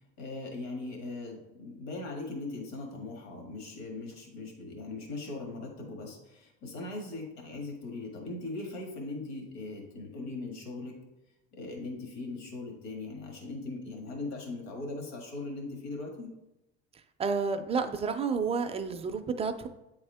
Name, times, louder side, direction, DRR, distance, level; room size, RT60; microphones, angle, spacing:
voice 1, 0.2-11.0 11.5-16.3, left 2 dB, 70° left, 1 dB, 1.6 m, -39 dB
voice 2, 17.2-19.7, right 5 dB, 20° right, 8 dB, 0.3 m, -30 dB
8.4 x 3.6 x 3.4 m, 0.94 s
cardioid pair, 130°, 29 cm